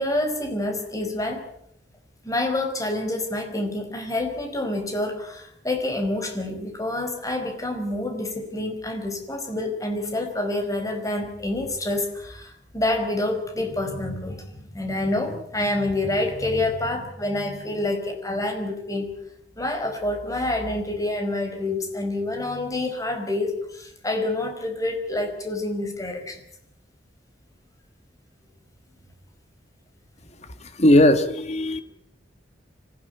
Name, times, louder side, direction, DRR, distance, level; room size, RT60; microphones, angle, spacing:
voice 1, 0.0-1.4 2.2-19.1 19.6-26.4, left 2 dB, 20° left, 4 dB, 5.0 m, -27 dB
voice 2, 30.6-31.8, left 1 dB, 35° left, 8 dB, 2.0 m, -18 dB
25.5 x 16.0 x 9.5 m, 0.74 s
head